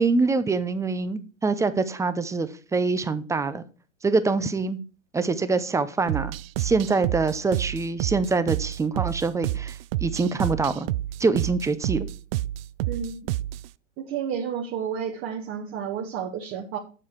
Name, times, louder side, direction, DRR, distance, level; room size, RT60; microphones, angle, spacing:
voice 1, 0.0-3.6 4.0-4.8 5.1-10.9 11.2-12.1, right 4 dB, 10° right, 12 dB, 0.6 m, -25 dB
sound 1, 6.1-13.7, right 15 dB, 50° right, 0.5 m, -29 dB
voice 2, 12.9-13.3 14.0-16.8, right 7 dB, 35° right, 1 dB, 1.6 m, -31 dB
8.2 x 7.6 x 4.5 m, 0.36 s
hypercardioid pair, 120°, 38 cm